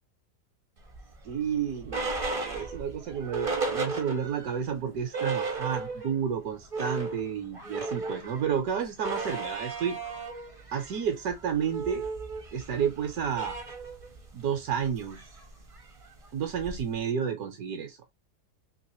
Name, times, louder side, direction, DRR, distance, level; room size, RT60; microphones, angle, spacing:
sound 1, 0.9-4.5 4.9-5.0 5.1-6.2 6.5-17.0, right 3 dB, 35° right, 0.5 m, -35 dB
voice 1, 1.2-10.0 10.7-12.0 12.5-13.6 14.3-15.3 16.3-18.0, right 7 dB, 75° right, 1.2 m, -31 dB
3.3 x 2.9 x 2.9 m
omnidirectional pair, 1.7 m